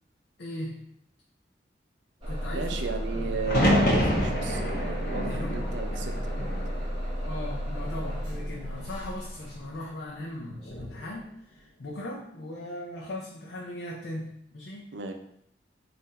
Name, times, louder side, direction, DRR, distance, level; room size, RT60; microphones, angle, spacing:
voice 1, 0.4-0.9 2.3-2.7 3.1-3.5 5.2-5.6 7.2-14.9, left 1 dB, 75° left, -3 dB, 0.7 m, -38 dB
Bus / Engine starting, 2.2-10.0, equal, 30° right, 1.0 m, -33 dB
voice 2, 2.5-6.6 14.9-15.1, right 4 dB, 85° right, 5 dB, 0.5 m, -34 dB
sound 1, 3.4-7.5 7.8-8.6 10.5-11.0, equal, 55° left, 1.0 m, -28 dB
4.1 x 2.6 x 4.1 m, 0.73 s
head